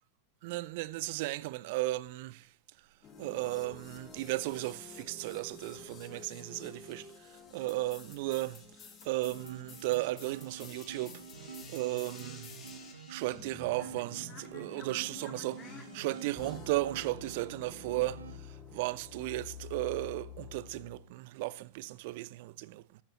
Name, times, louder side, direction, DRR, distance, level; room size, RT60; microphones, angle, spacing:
voice 1, 0.4-2.5 3.2-12.6 13.1-23.0, right 18 dB, 50° right, 0.5 m, -35 dB
sound 1, 3.0-21.0, left 6 dB, 25° left, 1.7 m, -50 dB
sound 2, 9.2-18.4, right 7 dB, 70° right, 1.0 m, -48 dB
14.5 x 12.0 x 3.0 m
figure-of-eight pair, 90°, 0 cm